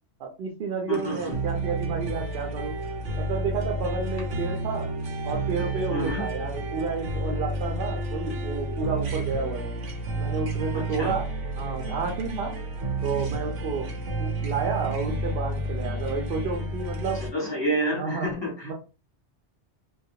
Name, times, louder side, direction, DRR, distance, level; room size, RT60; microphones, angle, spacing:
voice 1, 0.2-2.7 3.2-4.9 5.2-9.7 10.2-11.3 11.6-12.5 13.0-13.9 14.2-17.2 17.9-18.3 18.6-18.7, right 5 dB, 65° right, 0 dB, 0.7 m, -31 dB
voice 2, 0.9-1.3 5.9-6.3 10.7-11.1 17.2-18.7, right 1 dB, 25° left, -2 dB, 0.9 m, -29 dB
sound 1, 0.9-17.3, right 1 dB, 85° right, 1.0 m, -31 dB
2.3 x 2.1 x 2.7 m, 0.32 s
omnidirectional pair, 1.2 m